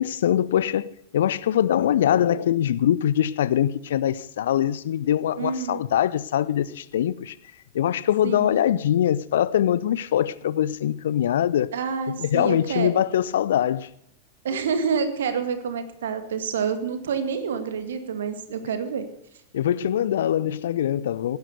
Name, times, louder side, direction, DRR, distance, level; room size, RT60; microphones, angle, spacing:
voice 1, 0.0-7.4 7.7-11.7 12.2-13.9 19.5-21.4, left 10 dB, 60° left, 0.6 m, -23 dB
voice 2, 5.4-5.8 8.2-8.5 11.7-12.9 14.4-19.1, right 6 dB, 60° right, 2.0 m, -28 dB
17.5 x 10.5 x 6.7 m
figure-of-eight pair, 90°, 0 cm